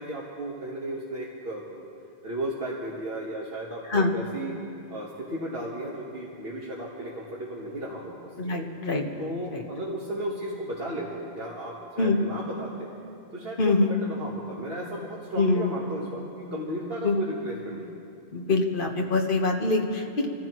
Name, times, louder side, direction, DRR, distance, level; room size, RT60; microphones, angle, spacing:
voice 1, 0.0-1.9 2.2-4.6 4.9-8.6 9.2-12.9 13.3-17.9, right 1 dB, 65° right, -4 dB, 1.7 m, -35 dB
voice 2, 8.4-9.6 12.0-12.2 13.6-13.9 15.4-15.8 17.0-17.1 18.3-20.3, left 3 dB, 55° left, 1 dB, 1.5 m, -24 dB
27.0 x 14.5 x 3.1 m, 2.7 s
omnidirectional pair, 1.1 m